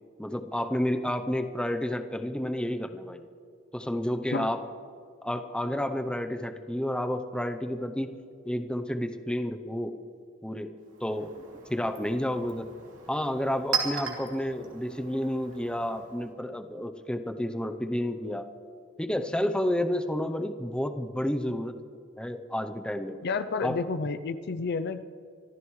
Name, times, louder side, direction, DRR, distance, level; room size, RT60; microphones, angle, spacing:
voice 1, 0.2-3.2 3.7-4.6 5.2-8.1 8.4-10.0 10.4-10.7 11.0-11.3 11.7-12.7 13.1-18.5 19.0-21.8 22.2-23.2 23.6-23.8, left 1 dB, 5° left, 7 dB, 0.7 m, -30 dB
Chink clink, 10.8-16.3, right 6 dB, 80° right, 2.9 m, -38 dB
voice 2, 23.2-25.0, left 4 dB, 55° left, 12 dB, 0.5 m, -30 dB
25.5 x 14.0 x 3.2 m, 2.3 s
head